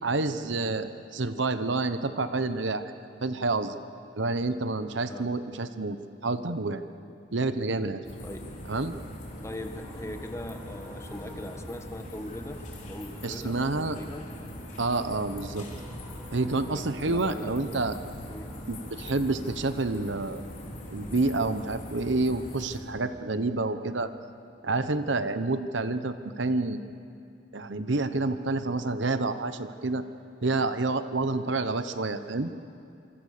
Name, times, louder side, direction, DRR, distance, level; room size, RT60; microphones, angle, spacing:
voice 1, 0.0-2.9 3.2-3.8 4.2-6.0 6.2-6.9 7.3-8.0 8.7-8.9 13.2-14.0 14.8-15.7 16.3-18.0 18.7-20.4 20.9-24.1 24.6-27.0 27.5-30.0 30.4-32.5, right 3 dB, 65° right, 10 dB, 1.0 m, -28 dB
sound 1, 8.0-22.8, equal, 40° left, 4.0 m, -41 dB
sound 2, 9.1-19.8, left 1 dB, ahead, 4.3 m, -53 dB
voice 2, 9.4-14.3 16.7-17.6 18.3-18.7 19.0-19.1, left 1 dB, 15° left, 6 dB, 1.4 m, -41 dB
27.0 x 24.5 x 6.7 m, 2.5 s
head